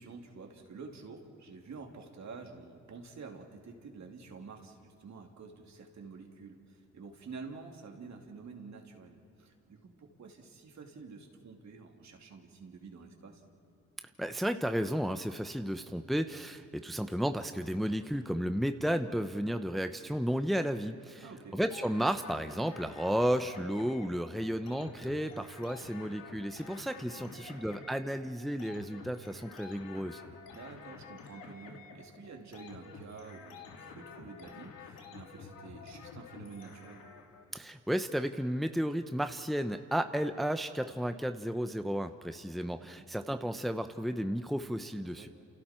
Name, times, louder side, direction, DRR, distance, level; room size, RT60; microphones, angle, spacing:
voice 1, 0.0-13.4 21.2-21.6 27.2-27.5 30.5-37.0 43.0-43.1 45.1-45.3, right 4 dB, 60° right, 2 dB, 3.0 m, -49 dB
voice 2, 14.2-21.3 21.5-30.2 37.5-45.3, equal, ahead, 8 dB, 0.8 m, -33 dB
sound 1, 21.7-37.4, left 5 dB, 90° left, 2.4 m, -50 dB
29.5 x 28.5 x 4.5 m, 2.8 s
cardioid pair, 70°, 32 cm